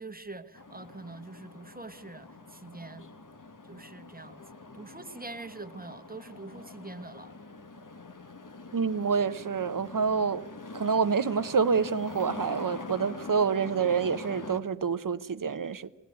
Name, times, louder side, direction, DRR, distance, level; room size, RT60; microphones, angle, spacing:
voice 1, 0.0-3.0 3.6-7.3, right 2 dB, 25° right, 1.1 m, -44 dB
sound 1, 0.5-14.6, left 3 dB, 70° left, 1.2 m, -45 dB
voice 2, 8.7-10.4 10.7-15.9, right 5 dB, 75° right, 0.7 m, -27 dB
22.0 x 17.0 x 9.5 m
wide cardioid pair, 45°, 33 cm